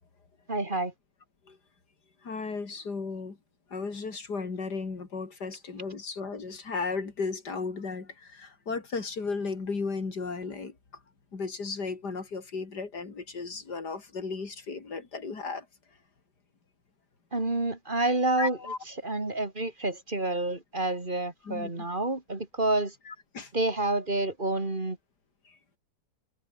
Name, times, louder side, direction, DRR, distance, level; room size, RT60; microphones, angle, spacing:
voice 1, 0.5-0.9 17.3-22.9 23.5-25.0, right 2 dB, 30° right, 2.7 m, -29 dB
voice 2, 2.2-3.4 3.7-10.7 11.3-15.7 18.4-18.8 21.4-21.9 23.1-23.5, left 4 dB, 85° left, 3.7 m, -35 dB
omnidirectional pair, 1.7 m